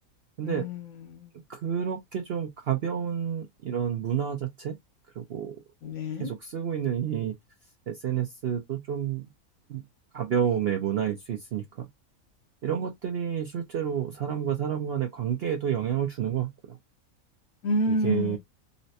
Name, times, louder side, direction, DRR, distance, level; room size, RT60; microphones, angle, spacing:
voice 1, 0.4-1.3 5.8-6.3 17.6-18.4, left 1 dB, 75° left, 1.3 m, -29 dB
voice 2, 1.5-4.8 5.2-5.6 6.2-7.3 7.9-9.2 9.7-9.8 10.1-11.9 12.6-16.8 17.9-18.4, right 9 dB, 65° right, 0.6 m, -29 dB
4.0 x 2.1 x 2.7 m
omnidirectional pair, 1.5 m